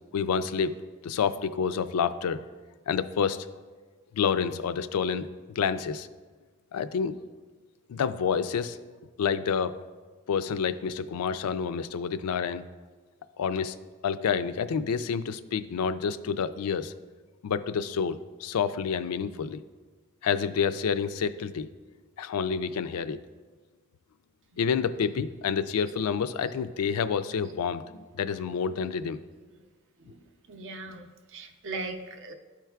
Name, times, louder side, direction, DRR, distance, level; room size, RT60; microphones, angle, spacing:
voice 1, 0.1-0.7 1.0-2.4 2.9-3.5 4.1-5.3 5.6-6.1 6.7-7.1 7.9-8.8 9.2-9.7 10.3-12.6 13.4-13.8 14.0-16.9 17.4-19.6 20.2-21.7 22.2-23.2 24.6-27.8 28.2-29.2, left 6 dB, 80° left, 12 dB, 0.4 m, -28 dB
voice 2, 30.5-32.3, right 3 dB, 60° right, 6 dB, 0.6 m, -39 dB
12.5 x 4.5 x 2.3 m, 1.4 s
head